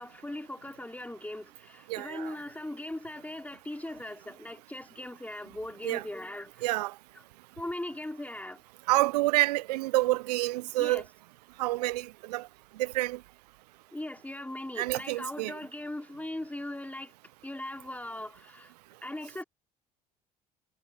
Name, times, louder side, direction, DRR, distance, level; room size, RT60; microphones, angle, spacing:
voice 1, 0.0-6.5 7.6-8.6 10.8-11.0 13.9-17.1 17.4-18.7 19.0-19.4, left 1 dB, 5° left, 4.4 m, -39 dB
voice 2, 1.9-2.4 5.8-6.1 6.6-6.9 8.9-11.0 11.6-12.5 12.8-13.2 14.8-15.6, right 19 dB, 80° right, 0.4 m, -28 dB
hypercardioid pair, 65°, 20 cm